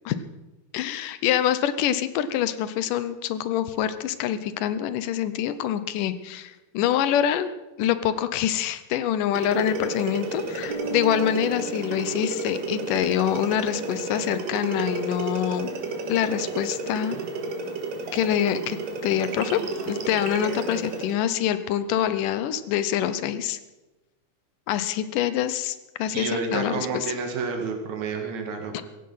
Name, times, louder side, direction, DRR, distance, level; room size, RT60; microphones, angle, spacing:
voice 1, 0.7-7.5 7.8-15.7 16.1-17.2 18.1-23.6 24.7-27.1, left 10 dB, 85° left, 13 dB, 2.5 m, -25 dB
sound 1, 9.3-21.2, right 4 dB, 90° right, 3.3 m, -32 dB
Bass guitar, 10.7-13.3, right 7 dB, 55° left, 3.5 m, -38 dB
voice 2, 26.1-28.8, right 4 dB, 60° right, 3 dB, 3.4 m, -30 dB
16.5 x 15.5 x 5.6 m, 1.1 s
omnidirectional pair, 3.7 m